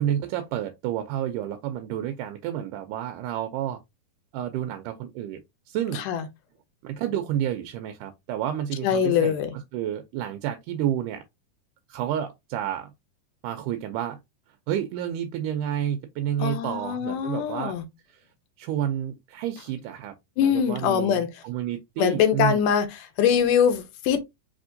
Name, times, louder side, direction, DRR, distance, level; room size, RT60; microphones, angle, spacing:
voice 1, 0.0-3.8 4.3-6.0 6.8-9.3 9.7-11.2 11.9-12.9 13.4-14.2 14.7-17.7 18.1-18.2 18.6-22.7, right 10 dB, 80° right, 2.0 m, -30 dB
voice 2, 8.8-9.5 16.4-17.8 20.4-21.3 22.0-24.2, left 8 dB, 75° left, 2.2 m, -23 dB
4.9 x 3.5 x 2.6 m
omnidirectional pair, 4.0 m